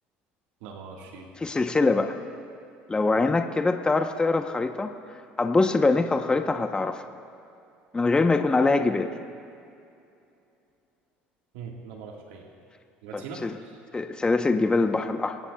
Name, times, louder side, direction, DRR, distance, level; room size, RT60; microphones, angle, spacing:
voice 1, 0.6-1.3 11.5-12.5 13.0-13.8, right 5 dB, 80° right, 0 dB, 1.7 m, -41 dB
voice 2, 1.4-2.1 2.9-4.9 5.4-7.0 7.9-9.1 13.1-13.6 13.9-15.4, left 3 dB, 20° left, 6 dB, 0.8 m, -23 dB
24.0 x 18.0 x 2.3 m, 2.6 s
supercardioid pair, 80°, 5 cm